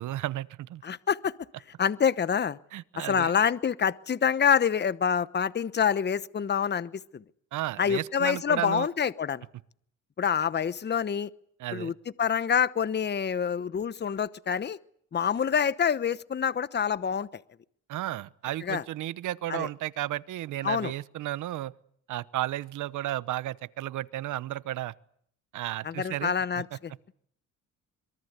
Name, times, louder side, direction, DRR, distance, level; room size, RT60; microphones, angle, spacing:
voice 1, 0.0-0.8 2.7-3.3 7.5-8.9 11.6-11.9 17.9-21.7 22.1-24.9 25.5-26.3, right 14 dB, 80° right, 17 dB, 1.0 m, -33 dB
voice 2, 0.8-1.3 1.8-2.6 3.0-7.2 7.8-9.5 10.2-11.3 11.7-14.8 15.1-17.4 18.6-18.8 19.5-19.7 20.6-20.9 25.8-27.1, left 7 dB, 35° left, 16 dB, 1.0 m, -27 dB
25.5 x 23.0 x 8.2 m, 0.66 s
cardioid pair, 90°, 30 cm